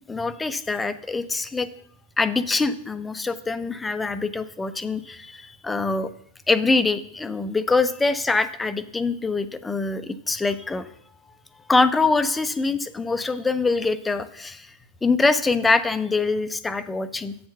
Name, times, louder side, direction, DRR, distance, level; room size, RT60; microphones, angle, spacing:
voice 1, 0.1-1.7 2.2-6.1 6.5-10.9 11.7-14.7 15.0-17.4, left 3 dB, 10° left, 12 dB, 0.5 m, -24 dB
8.4 x 4.4 x 5.7 m, 0.65 s
figure-of-eight pair, 90°, 0 cm